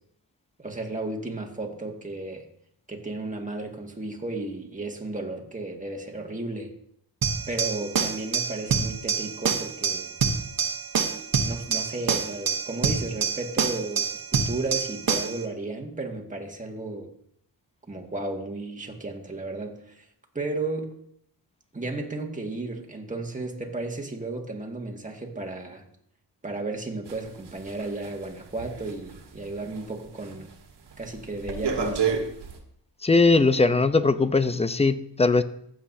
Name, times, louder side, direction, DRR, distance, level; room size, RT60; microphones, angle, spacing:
voice 1, 0.6-2.5 2.9-6.7 7.5-10.1 11.4-17.1 17.9-20.0 20.3-20.9 21.7-25.8 26.4-30.5 31.0-32.2, right 2 dB, 20° right, 0 dB, 1.9 m, -34 dB
sound 1, 7.2-15.4, right 5 dB, 55° right, 1.3 m, -26 dB
sound 2, 27.1-29.9 30.2-30.5 30.9-32.6, right 6 dB, 80° right, 1.7 m, -31 dB
voice 2, 33.0-35.4, left 3 dB, 15° left, 12 dB, 0.6 m, -20 dB
15.0 x 7.9 x 2.8 m, 0.70 s
cardioid pair, 70°, 41 cm